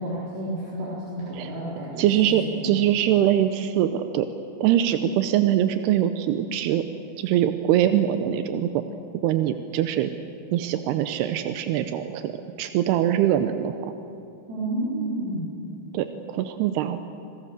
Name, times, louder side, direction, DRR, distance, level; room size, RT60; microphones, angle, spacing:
voice 1, 0.0-2.7 14.5-15.5, right 1 dB, 65° right, -8 dB, 6.1 m, -31 dB
voice 2, 2.0-4.3 4.6-6.8 7.2-8.8 9.2-10.1 10.5-12.3 12.6-13.9 15.9-17.0, right 11 dB, 85° right, 9 dB, 2.8 m, -23 dB
26.0 x 22.5 x 6.7 m, 2.7 s
omnidirectional pair, 4.6 m